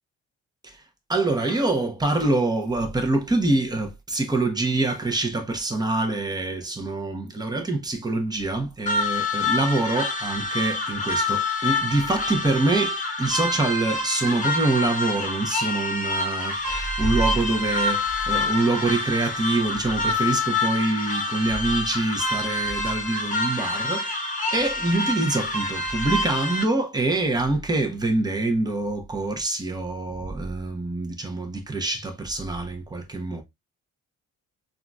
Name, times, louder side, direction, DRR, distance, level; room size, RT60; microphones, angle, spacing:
voice 1, 1.1-33.4, right 2 dB, 15° right, 0.8 m, -25 dB
sound 1, 8.9-26.6, left 2 dB, 25° left, 1.0 m, -27 dB
3.7 x 2.5 x 2.2 m
cardioid pair, 90°, 30 cm